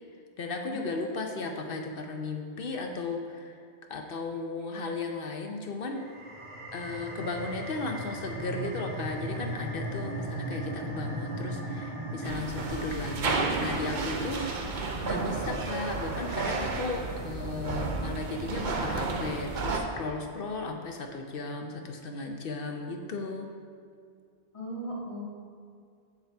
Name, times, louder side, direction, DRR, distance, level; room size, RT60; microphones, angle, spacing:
voice 1, 0.4-3.6 3.9-6.0 6.7-23.5, left 3 dB, 60° left, 3 dB, 0.8 m, -35 dB
sound 1, 6.0-17.1, right 1 dB, 65° right, 1.5 m, -38 dB
sound 2, 12.2-19.8, right 3 dB, 50° right, 0.7 m, -32 dB
voice 2, 24.5-25.2, right 1 dB, 30° left, -6 dB, 1.8 m, -38 dB
7.9 x 7.1 x 3.4 m, 2.2 s
omnidirectional pair, 1.1 m